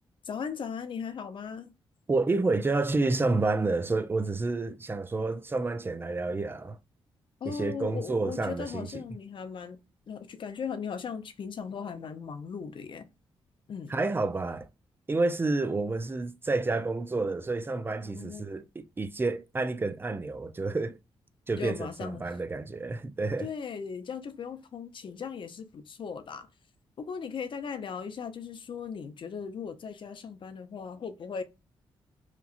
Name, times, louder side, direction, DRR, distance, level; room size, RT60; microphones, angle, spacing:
voice 1, 0.2-1.7 7.4-9.8 10.1-13.1 13.7-13.9 18.0-18.5 21.6-22.4 23.4-26.5 27.0-31.4, left 6 dB, 55° left, 0.6 m, -38 dB
voice 2, 2.1-6.8 7.4-8.9 13.9-14.7 15.1-21.0 21.5-23.5, right 3 dB, 20° right, 0.4 m, -29 dB
2.9 x 2.3 x 2.4 m
cardioid pair, 70°, 10 cm